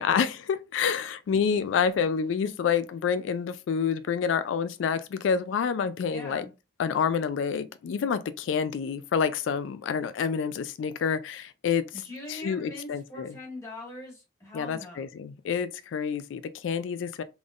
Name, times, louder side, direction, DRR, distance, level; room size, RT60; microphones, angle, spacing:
voice 1, 0.0-6.5 6.8-12.0 12.3-13.4 14.5-17.2, left 6 dB, 90° left, 0.3 m, -28 dB
voice 2, 6.1-6.5 11.9-15.1, left 2 dB, 15° left, 1.7 m, -42 dB
3.7 x 3.5 x 2.4 m
head